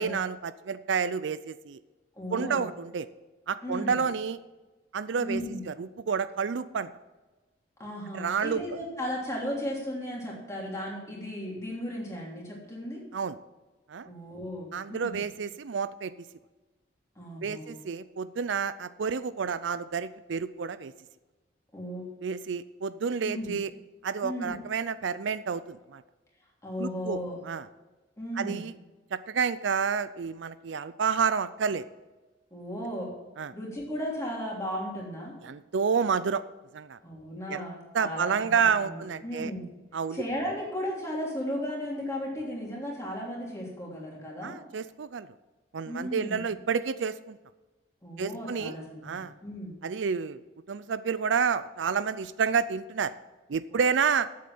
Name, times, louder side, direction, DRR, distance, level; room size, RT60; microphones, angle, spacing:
voice 1, 0.0-1.8 2.3-3.1 3.5-4.4 4.9-5.4 5.7-6.9 8.1-8.6 13.1-13.4 13.9-14.1 14.7-16.1 17.4-20.9 22.2-23.7 24.0-26.0 26.8-27.7 28.4-28.7 29.1-31.8 33.4-33.5 35.4-36.4 36.7-37.0 37.5-37.7 37.9-39.5 39.9-40.2 44.4-45.3 45.7-47.4 48.2-48.8 49.0-49.3 49.8-50.4 50.7-53.1 53.5-54.3, right 6 dB, 70° right, 14 dB, 0.4 m, -29 dB
voice 2, 2.2-2.7 3.6-4.0 5.2-5.6 7.8-13.0 14.0-15.2 17.1-17.7 21.7-22.1 23.2-23.5 24.2-24.6 26.6-27.4 28.2-28.6 32.5-33.1 33.5-35.3 37.0-39.7 40.1-44.6 45.8-46.4 48.0-49.8, equal, 15° left, -3 dB, 3.1 m, -35 dB
8.6 x 7.6 x 7.8 m, 1.2 s
head